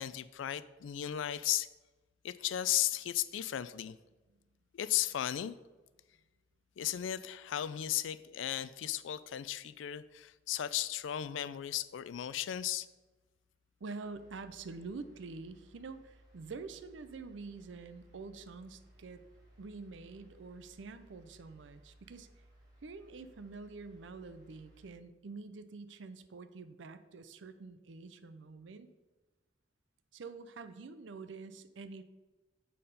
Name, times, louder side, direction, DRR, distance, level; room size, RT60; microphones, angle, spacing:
voice 1, 0.0-1.7 2.2-4.0 4.7-5.5 6.8-12.9, left 12 dB, 90° left, 0.4 m, -35 dB
voice 2, 13.8-19.2 19.6-22.3 22.8-28.9 30.1-32.0, right 4 dB, 80° right, 0.5 m, -47 dB
sound 1, 14.0-24.9, right 1 dB, 20° right, 2.5 m, -62 dB
7.6 x 4.2 x 5.2 m
head